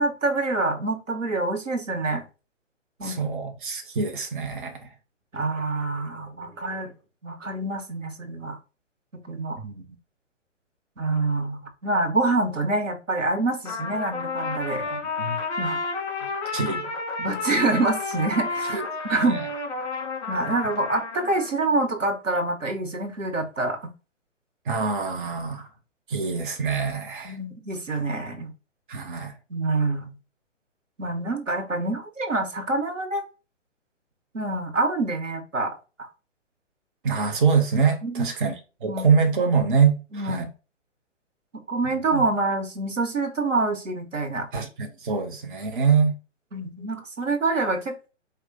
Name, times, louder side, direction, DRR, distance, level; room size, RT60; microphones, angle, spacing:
voice 1, 0.0-2.2 3.0-3.3 5.3-6.9 7.2-8.6 9.3-9.6 11.0-15.0 15.6-15.8 17.2-18.8 19.1-19.4 20.3-23.8 27.2-28.5 29.5-30.1 31.0-33.2 34.3-36.1 38.0-38.3 38.8-39.1 40.1-40.5 41.7-44.5 46.5-48.1, right 2 dB, 85° right, 1.2 m, -26 dB
voice 2, 3.0-4.9 9.6-9.8 14.8-14.9 15.2-15.4 16.5-16.8 18.7-18.8 19.1-19.4 24.7-25.7 26.1-27.4 28.9-29.3 37.0-38.6 38.8-40.5 41.9-42.2 44.5-46.1, right 5 dB, 40° right, 0.9 m, -24 dB
Trumpet, 13.6-21.5, left 4 dB, 35° left, 1.8 m, -31 dB
4.6 x 2.4 x 3.8 m
figure-of-eight pair, 135°, 37 cm